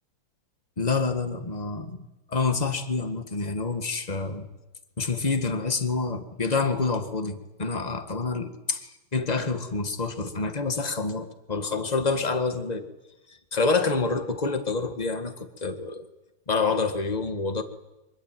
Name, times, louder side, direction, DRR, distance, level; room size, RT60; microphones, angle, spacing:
voice 1, 0.8-2.0 2.3-4.5 5.0-12.9 13.3-16.0 16.5-17.6, left 4 dB, 20° left, 8 dB, 1.7 m, -27 dB
24.5 x 23.0 x 9.3 m, 0.99 s
omnidirectional pair, 2.4 m